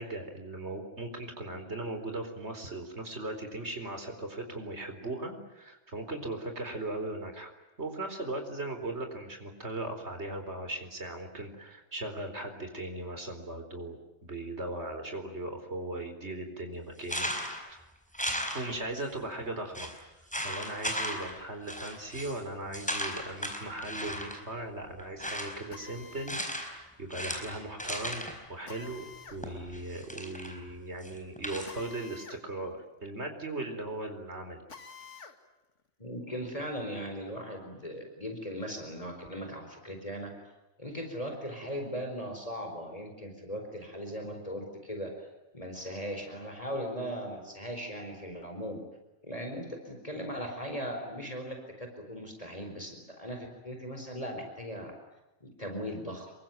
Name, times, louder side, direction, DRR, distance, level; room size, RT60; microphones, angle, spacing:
voice 1, 0.0-7.5 7.8-17.3 17.6-17.8 18.5-19.9 20.4-29.0 29.3-34.6, right 2 dB, 65° right, 5 dB, 4.6 m, -38 dB
sound 1, 17.0-17.7 18.1-19.0 19.3-19.4 19.7-19.9 20.3-21.4 21.7-22.4 22.7-24.4 25.0-25.7 26.3-26.8 27.1-28.4 29.4-30.6 31.0-31.7, equal, 5° left, 4.7 m, -36 dB
Drill, 25.7-26.5 28.7-29.4 31.6-32.4 32.8-32.9 34.7-35.4, left 5 dB, 80° left, 2.3 m, -48 dB
voice 2, 36.0-40.3 40.8-45.1 45.5-48.8 49.2-54.9 55.4-56.3, equal, 30° left, 4 dB, 4.6 m, -38 dB
27.5 x 23.5 x 9.1 m, 1.0 s
omnidirectional pair, 1.2 m